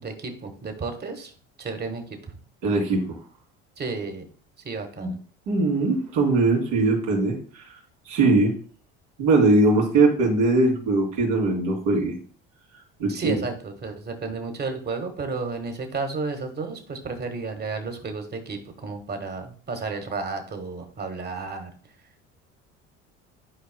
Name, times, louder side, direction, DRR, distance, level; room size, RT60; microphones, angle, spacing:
voice 1, 0.0-1.3 1.6-2.4 3.8-4.3 4.6-5.1 13.1-21.7, right 4 dB, 30° right, 6 dB, 1.6 m, -32 dB
voice 2, 2.6-3.0 5.0-5.1 5.5-7.4 8.1-8.5 9.2-12.2 13.0-13.4, right 3 dB, 80° right, -2 dB, 3.0 m, -20 dB
11.5 x 4.7 x 2.2 m, 0.43 s
supercardioid pair, 80°, 31 cm